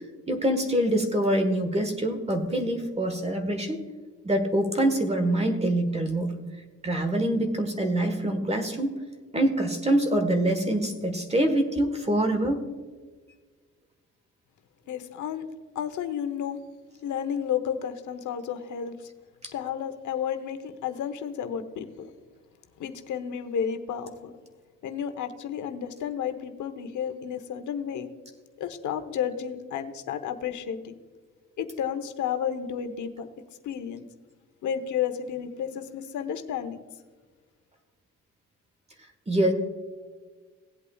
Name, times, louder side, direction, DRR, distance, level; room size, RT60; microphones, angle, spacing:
voice 1, 0.3-3.8 4.2-6.3 6.8-8.9 9.3-12.6 19.4-19.5 39.3-39.5, right 1 dB, 20° right, 5 dB, 1.4 m, -25 dB
voice 2, 14.9-15.5 15.7-16.6 17.0-19.0 19.5-22.1 22.8-24.4 24.8-28.1 28.6-31.0 31.6-33.3 33.6-34.0 34.6-36.8, left 8 dB, 75° left, 8 dB, 1.1 m, -32 dB
18.0 x 8.3 x 2.4 m, 1.4 s
cardioid pair, 90°, 30 cm